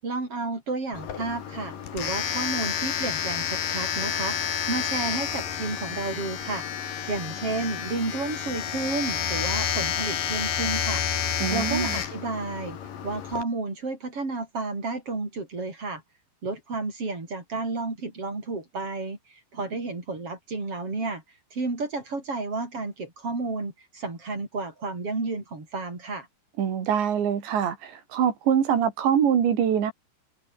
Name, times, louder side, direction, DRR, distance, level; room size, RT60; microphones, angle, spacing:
voice 1, 0.0-6.7 7.1-11.0 11.5-12.8 13.0-16.0 16.4-21.2 21.5-26.3, right 3 dB, 30° right, 7.3 m, -31 dB
Domestic sounds home sounds, 0.9-13.4, left 8 dB, 55° left, 3.8 m, -30 dB
voice 2, 11.4-12.0 26.6-29.9, right 8 dB, 80° right, 5.5 m, -24 dB
omnidirectional pair, 5.1 m